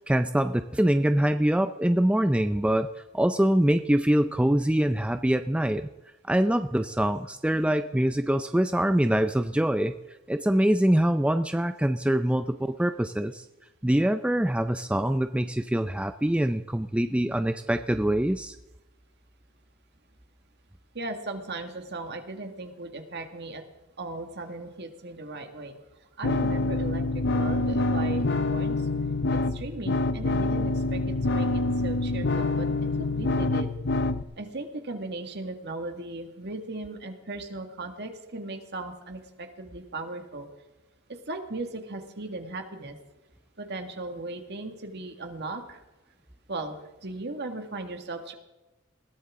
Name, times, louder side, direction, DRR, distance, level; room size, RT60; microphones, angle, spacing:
voice 1, 0.1-2.9 3.1-5.9 6.3-9.9 10.3-13.4 13.8-18.6, right 1 dB, 5° right, 9 dB, 0.4 m, -24 dB
voice 2, 20.9-23.6 24.0-25.8 26.2-28.9 29.5-32.7 33.0-33.7 34.4-40.5 41.3-43.0 43.6-45.8 46.5-46.8 47.0-48.3, right 2 dB, 55° right, 5 dB, 2.0 m, -37 dB
sound 1, 26.2-34.2, left 2 dB, 55° left, 0.8 m, -26 dB
21.0 x 16.5 x 3.7 m, 1.0 s
head